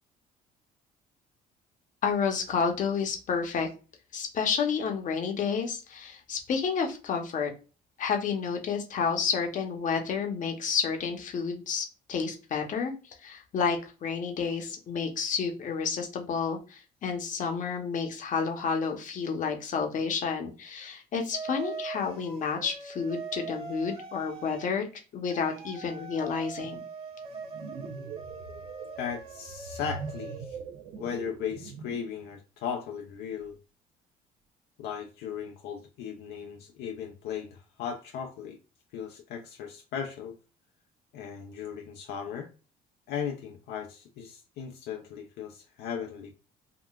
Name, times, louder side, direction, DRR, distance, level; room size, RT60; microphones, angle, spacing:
voice 1, 2.0-3.7 4.1-7.5 8.0-24.8 25.1-26.8, left 6 dB, 50° left, 0.8 m, -30 dB
sound 1, 21.3-24.7 25.3-30.4, right 4 dB, 35° right, 0.9 m, -42 dB
sound 2, 27.3-32.1, right 5 dB, 80° right, 0.6 m, -42 dB
voice 2, 29.0-30.6 31.0-33.6 34.8-38.6 38.9-40.4 41.1-42.5 43.1-46.3, left 7 dB, 75° left, 0.5 m, -37 dB
3.7 x 2.3 x 2.3 m
cardioid pair, 110°, 17 cm